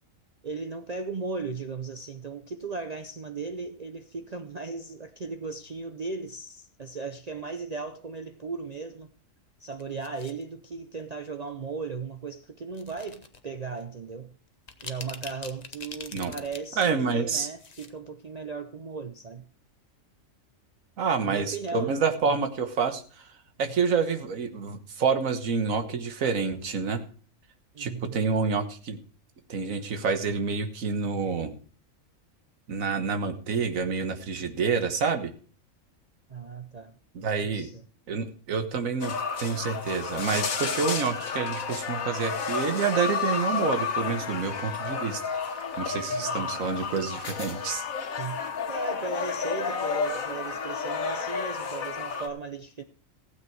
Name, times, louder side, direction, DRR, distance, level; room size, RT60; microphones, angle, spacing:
voice 1, 0.4-9.1 9.6-14.3 14.8-19.5 21.2-22.0 22.2-22.3 23.6-23.7 27.7-28.2 36.3-37.0 37.4-37.8 46.1-46.7 48.2-52.8, right 4 dB, 40° right, 0.6 m, -37 dB
sound 1, 9.6-10.4 11.2-11.5 12.7-13.4 13.8-13.9 14.5-16.8 17.2-17.9 18.2-18.3, left 4 dB, 35° left, 1.0 m, -43 dB
voice 2, 16.8-17.5 21.0-23.3 23.6-27.0 27.8-29.0 29.5-31.6 32.7-35.3 37.1-37.7 38.1-45.2 45.8-47.8, right 5 dB, 80° right, 1.7 m, -28 dB
sound 2, 39.0-52.3, left 5 dB, 90° left, 1.7 m, -31 dB
15.5 x 8.3 x 4.7 m
omnidirectional pair, 1.4 m